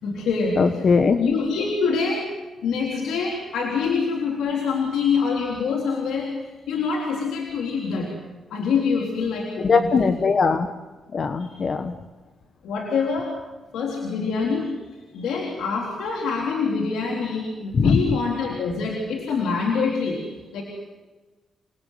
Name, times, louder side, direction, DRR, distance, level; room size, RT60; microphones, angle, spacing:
voice 1, 0.0-0.8 1.2-2.3 2.6-8.1 8.5-10.1 11.4-11.5 12.6-13.3 13.7-20.3 20.5-20.6, left 5 dB, 90° left, 0 dB, 4.0 m, -25 dB
voice 2, 0.6-1.2 9.6-10.7 11.1-11.9 17.7-18.0, left 5 dB, 50° left, 9 dB, 1.4 m, -20 dB
29.0 x 20.0 x 9.4 m, 1.3 s
cardioid pair, 75°, 0 cm